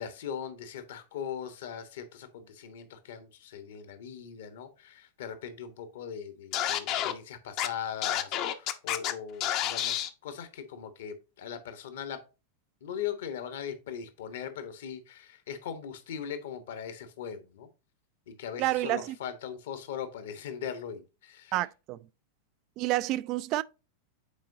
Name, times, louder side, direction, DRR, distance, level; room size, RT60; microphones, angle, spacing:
voice 1, 0.0-12.2 12.8-17.7 18.3-21.5, left 8 dB, 55° left, 1.2 m, -40 dB
Scratching (performance technique), 6.5-7.1 7.6-7.7 8.0-9.1 9.4-10.1, left 11 dB, 40° left, 0.8 m, -29 dB
voice 2, 18.6-19.2 21.5-22.0 22.8-23.6, right 17 dB, 40° right, 0.4 m, -29 dB
8.8 x 4.5 x 2.7 m
figure-of-eight pair, 90°, 0 cm